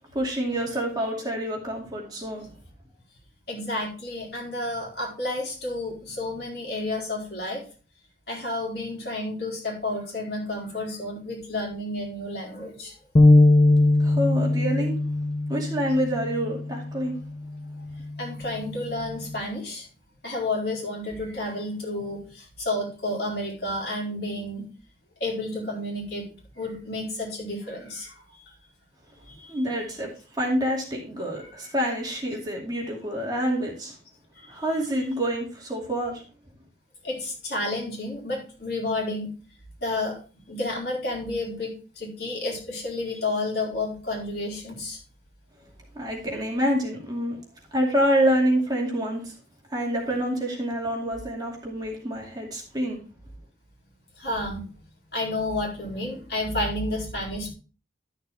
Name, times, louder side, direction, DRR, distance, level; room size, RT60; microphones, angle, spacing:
voice 1, 0.1-2.5 14.0-15.0 15.5-17.1 29.5-34.0 34.5-36.2 45.9-47.4 47.7-49.3 49.7-53.0, equal, 20° right, -1 dB, 2.5 m, -27 dB
voice 2, 3.5-7.7 8.3-13.0 18.2-19.9 20.2-24.7 25.2-26.3 26.6-28.2 29.3-29.5 31.4-31.7 34.4-34.5 37.0-39.3 39.8-40.2 40.5-45.0 54.2-54.7 55.1-57.5, left 2 dB, 65° left, -2 dB, 4.0 m, -31 dB
sound 1, 13.2-19.4, left 2 dB, 35° left, 0.6 m, -22 dB
12.0 x 6.5 x 3.5 m, 0.36 s
head